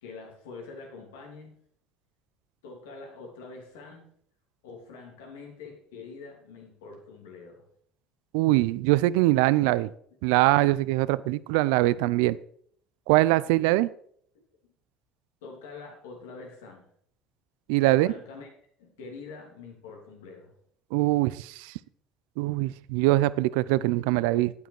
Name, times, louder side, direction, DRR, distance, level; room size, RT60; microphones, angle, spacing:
voice 1, 0.0-1.6 2.6-4.1 4.6-7.6 15.4-16.9 17.8-18.5 18.8-20.5, left 4 dB, 90° left, 1 dB, 2.8 m, -45 dB
voice 2, 8.3-9.9 10.2-12.4 13.1-13.9 17.7-18.1 20.9-21.7 22.4-24.5, right 18 dB, 80° right, 18 dB, 0.4 m, -23 dB
9.2 x 8.4 x 4.7 m, 0.63 s
supercardioid pair, 80°, 0 cm